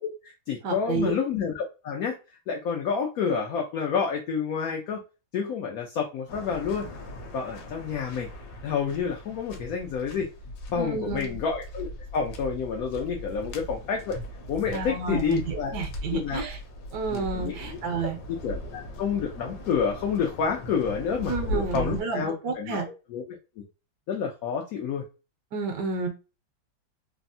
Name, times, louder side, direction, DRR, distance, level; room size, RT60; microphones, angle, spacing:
voice 1, 0.0-2.1 2.5-5.0 5.3-6.9 7.3-8.3 8.6-10.3 10.7-14.2 14.5-15.7 16.1-16.4 17.1-17.8 18.3-22.9 23.1-23.4 24.1-25.0, left 6 dB, 90° left, 1 dB, 0.7 m, -29 dB
voice 2, 0.6-1.1 10.7-11.4 14.7-16.6 16.9-18.2 21.3-22.9 25.5-26.1, right 4 dB, 70° right, 4 dB, 1.1 m, -30 dB
Waves surf, 6.3-22.0, left 1 dB, 70° left, 1.1 m, -38 dB
3.4 x 2.0 x 2.5 m, 0.30 s
omnidirectional pair, 2.1 m